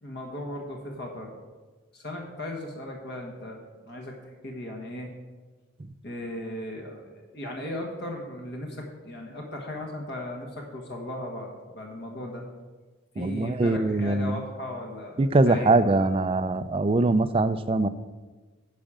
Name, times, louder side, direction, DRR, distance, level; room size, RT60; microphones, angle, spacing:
voice 1, 0.0-1.3 1.9-3.6 3.8-5.1 6.0-12.4 13.1-15.8, left 1 dB, 50° left, 1 dB, 1.3 m, -37 dB
voice 2, 13.2-14.4 15.2-17.9, right 2 dB, 25° right, 13 dB, 0.3 m, -22 dB
10.5 x 5.0 x 7.4 m, 1.3 s
head